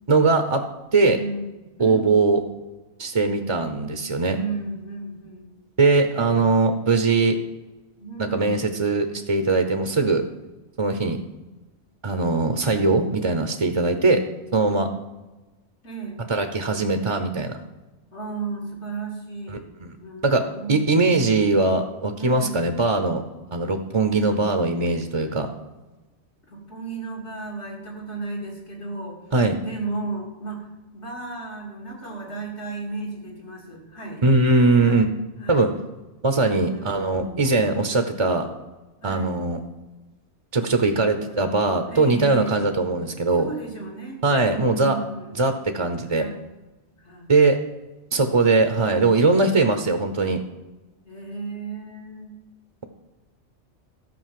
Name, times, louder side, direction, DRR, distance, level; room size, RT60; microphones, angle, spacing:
voice 1, 0.1-0.6 0.9-1.2 1.8-2.4 3.0-4.4 5.8-7.4 8.2-10.2 10.8-11.2 12.0-14.2 14.5-14.9 16.3-17.6 19.8-19.9 20.2-20.4 20.7-23.2 23.5-25.5 29.3-29.6 34.2-35.1 35.5-35.7 36.2-38.5 39.0-39.6 40.5-43.5 44.2-45.0 45.3-46.2 47.3-47.6 48.1-50.4, right 3 dB, 30° right, 6 dB, 0.7 m, -20 dB
voice 2, 1.1-2.3 4.3-5.6 8.0-8.6 15.8-16.2 18.1-19.6 20.0-21.1 22.2-22.9 26.5-29.2 29.6-30.7 30.9-34.2 34.8-35.1 35.4-35.7 36.6-37.6 39.0-39.4 41.1-41.5 41.9-42.6 43.4-44.2 44.5-45.4 46.0-46.4 47.0-47.3 49.4-49.7 51.0-52.3, right 3 dB, 75° left, -1 dB, 3.0 m, -34 dB
13.5 x 5.4 x 7.6 m, 1.1 s
omnidirectional pair, 1.2 m